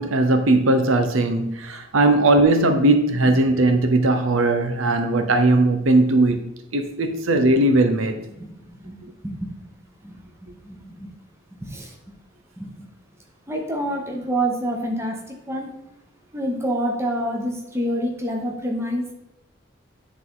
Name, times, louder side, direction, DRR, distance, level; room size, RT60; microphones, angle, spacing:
voice 1, 0.0-6.4 6.7-8.2, right 2 dB, 80° right, 0.8 m, -18 dB
voice 2, 8.4-9.5 10.0-11.1 11.6-12.0 12.6-12.7 13.5-15.8 16.3-19.1, equal, 15° right, 1.2 m, -27 dB
9.8 x 4.0 x 3.8 m
head